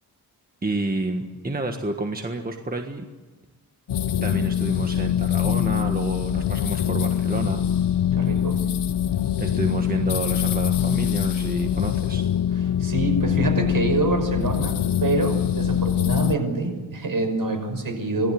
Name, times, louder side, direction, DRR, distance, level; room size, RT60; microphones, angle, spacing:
voice 1, 0.6-3.0 4.2-7.6 9.4-12.2, right 2 dB, 20° right, 4 dB, 1.6 m, -29 dB
sound 1, 3.9-16.4, left 9 dB, 90° left, 0.8 m, -23 dB
voice 2, 8.1-8.6 12.6-18.3, right 3 dB, 55° right, 6 dB, 5.7 m, -26 dB
27.0 x 19.0 x 7.8 m, 1.3 s
wide cardioid pair, 145°, 40 cm